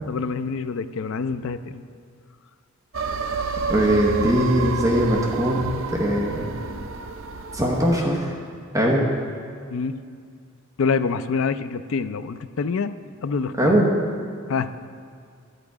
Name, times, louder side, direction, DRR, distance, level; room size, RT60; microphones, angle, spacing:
voice 1, 0.1-1.8 9.7-10.0 10.8-12.9 13.2-13.8 14.5-14.7, left 5 dB, 65° left, 12 dB, 0.4 m, -26 dB
sound 1, 2.9-8.0, right 4 dB, 65° right, 0.5 m, -29 dB
voice 2, 3.7-6.5 7.5-8.3 8.7-9.1 13.6-13.9, equal, 15° right, -2 dB, 1.0 m, -21 dB
11.0 x 9.0 x 4.8 m, 2.2 s
head